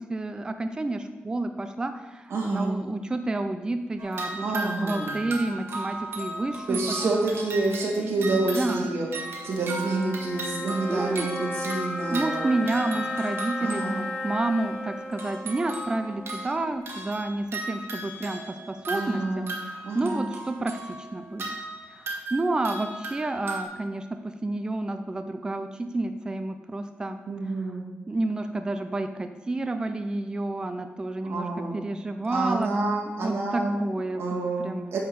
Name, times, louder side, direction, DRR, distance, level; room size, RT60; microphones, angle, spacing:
voice 1, 0.1-7.2 8.0-8.9 10.9-11.3 12.1-13.8 14.2-20.7 21.1-21.6 21.9-24.0 24.4-27.2 28.1-31.5 31.7-32.7 33.2-34.8, right 2 dB, 20° right, 8 dB, 0.4 m, -30 dB
voice 2, 2.3-2.8 4.4-5.2 6.7-9.1 9.4-12.6 13.6-14.1 18.9-19.5 19.8-20.2 27.3-27.8 31.2-31.9 32.3-33.8 34.1-35.0, right 3 dB, 90° right, -1 dB, 2.1 m, -28 dB
sound 1, 4.0-14.2 15.1-23.6, right 2 dB, 75° right, 1.6 m, -36 dB
sound 2, 7.9-17.3, left 1 dB, 45° left, 3.2 m, -36 dB
9.3 x 4.0 x 6.8 m, 1.2 s
wide cardioid pair, 150°, 4 cm